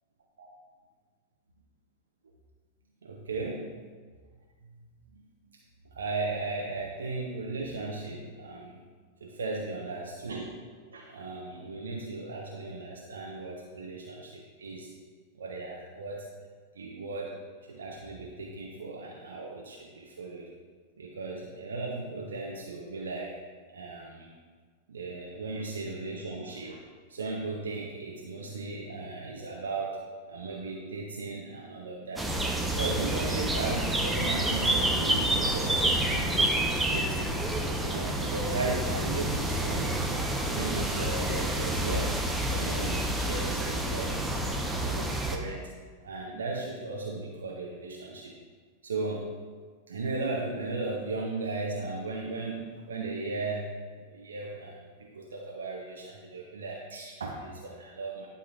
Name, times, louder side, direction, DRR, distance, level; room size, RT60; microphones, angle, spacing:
voice 1, 3.0-3.7 4.6-4.8 5.1-5.3 5.9-8.8 9.2-14.9 15.3-16.3 16.7-17.4 17.7-20.5 21.0-23.3 23.7-24.3 24.9-26.8 27.1-32.3 32.7-36.3 36.6-37.3 37.8-42.1 42.5-45.7 46.0-48.3 48.8-49.3 49.9-58.3, right 3 dB, 70° right, -2 dB, 0.8 m, -36 dB
sound 1, 32.2-45.4, right 1 dB, 5° right, 0.7 m, -28 dB
11.5 x 5.2 x 2.5 m, 1.5 s
figure-of-eight pair, 90°, 0 cm